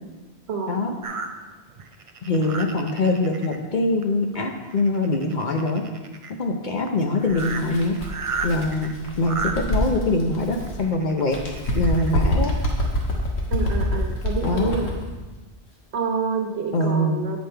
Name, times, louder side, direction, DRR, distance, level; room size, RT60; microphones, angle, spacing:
voice 1, 0.5-0.8 13.5-14.9 15.9-17.4, right 5 dB, 75° right, 2 dB, 1.3 m, -27 dB
sound 1, 1.0-3.6 4.0-4.4 4.6-6.3 6.9-7.0 7.2-9.6 10.6-12.1 12.7-12.8 13.2-13.3, right 4 dB, 45° right, 0.4 m, -33 dB
voice 2, 2.3-5.8 6.4-8.0 8.4-11.4 11.7-12.5 14.4-14.8 16.7-17.2, left 2 dB, 50° left, 3 dB, 0.7 m, -23 dB
Bird, 7.3-10.9 11.3-15.1, left 1 dB, 80° left, 1.5 m, -26 dB
8.1 x 5.2 x 4.4 m, 1.2 s
omnidirectional pair, 1.1 m